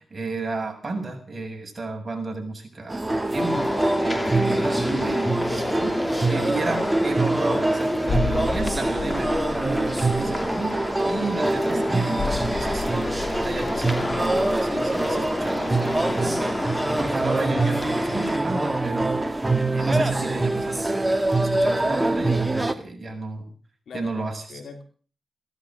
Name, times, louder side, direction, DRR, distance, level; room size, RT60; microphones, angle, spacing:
voice 1, 0.0-3.0 3.3-5.9 6.3-19.3 19.7-23.5 23.9-24.6, right 2 dB, 35° right, 3 dB, 7.2 m, -32 dB
sound 1, 2.9-22.7, right 2 dB, 20° right, 2.0 m, -25 dB
sound 2, 3.4-18.4, left 1 dB, 20° left, 2.6 m, -30 dB
voice 2, 5.4-6.8 8.0-8.3 23.9-24.8, left 5 dB, 80° left, 7 dB, 3.3 m, -41 dB
sound 3, 8.1-16.5 16.7-16.9, left 5 dB, 60° left, 1.0 m, -34 dB
17.0 x 13.5 x 6.3 m, 0.41 s
cardioid pair, 55°, 0 cm